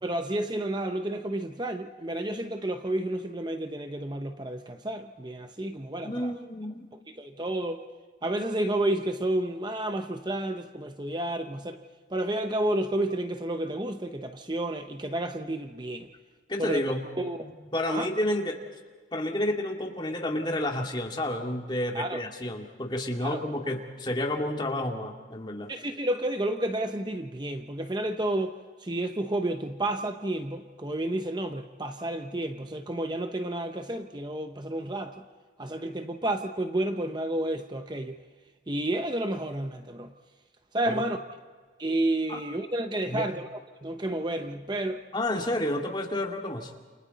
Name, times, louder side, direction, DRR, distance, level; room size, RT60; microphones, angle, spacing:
voice 1, 0.0-6.3 7.1-7.8 8.2-11.8 12.1-16.1 16.6-16.8 17.2-17.5 17.9-18.1 21.9-22.2 23.2-23.5 25.7-35.1 35.6-38.2 38.7-40.1 40.7-41.2 41.8-43.5 43.8-45.0, right 1 dB, 25° right, 0.8 m, -31 dB
voice 2, 6.0-6.9 16.5-17.0 17.4-18.6 19.1-25.7 40.9-41.0 42.3-42.4 43.1-43.2 45.1-46.7, left 1 dB, 25° left, 2.3 m, -30 dB
29.0 x 29.0 x 4.2 m
head